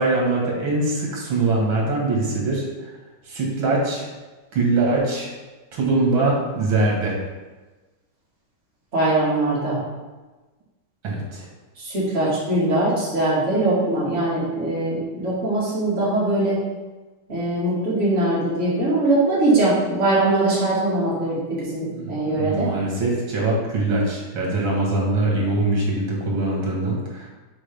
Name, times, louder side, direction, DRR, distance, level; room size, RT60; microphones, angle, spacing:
voice 1, 0.0-2.9 3.3-4.1 4.5-5.3 5.7-7.1 11.0-11.5 21.9-27.3, right 2 dB, 80° right, -2 dB, 2.3 m, -22 dB
voice 2, 8.9-9.8 11.8-16.6 17.3-22.7, right 2 dB, 35° right, -9 dB, 2.4 m, -21 dB
7.2 x 4.4 x 3.4 m, 1.2 s
omnidirectional pair, 2.1 m